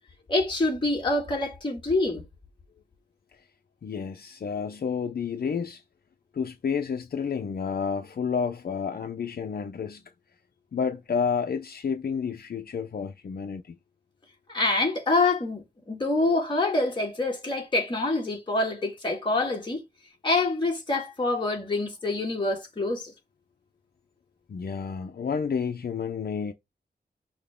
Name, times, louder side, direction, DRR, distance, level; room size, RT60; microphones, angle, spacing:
voice 1, 0.3-2.2 14.5-19.8 20.2-23.1, left 2 dB, 30° left, 2.3 m, -26 dB
voice 2, 3.8-5.8 6.3-10.0 10.7-13.8 24.5-26.5, left 6 dB, 60° left, 0.8 m, -30 dB
6.3 x 5.9 x 3.8 m
wide cardioid pair, 165°, 17 cm